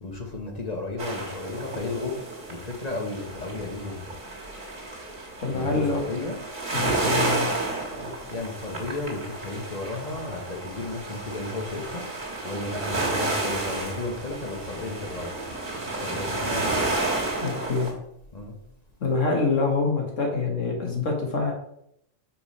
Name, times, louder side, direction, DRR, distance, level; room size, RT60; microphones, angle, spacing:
voice 1, 0.0-2.1 2.5-3.9 5.5-6.4 8.0-12.0 12.4-15.3 16.0-16.9 18.3-18.5, left 3 dB, 35° left, 1 dB, 0.9 m, -33 dB
sound 1, 1.0-17.9, right 2 dB, 40° right, 1.6 m, -31 dB
voice 2, 5.4-6.0 6.7-7.5 17.4-17.9 19.0-21.5, left 4 dB, 75° left, 0 dB, 1.8 m, -25 dB
5.7 x 4.9 x 4.2 m, 0.75 s
omnidirectional pair, 1.3 m